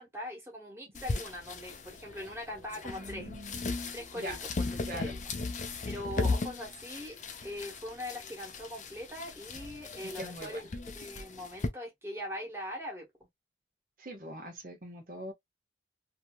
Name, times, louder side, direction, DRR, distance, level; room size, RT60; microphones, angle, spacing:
voice 1, 0.0-3.3 3.9-5.2 5.8-7.2 7.4-10.7 10.9-13.1, left 1 dB, 15° right, 1.4 m, -41 dB
sound 1, 0.9-11.7, left 3 dB, 45° left, 0.6 m, -37 dB
voice 2, 2.9-3.7 4.1-4.4 4.9-5.1 10.1-10.6 14.0-15.3, equal, 50° right, 1.1 m, -42 dB
3.0 x 2.7 x 2.2 m
head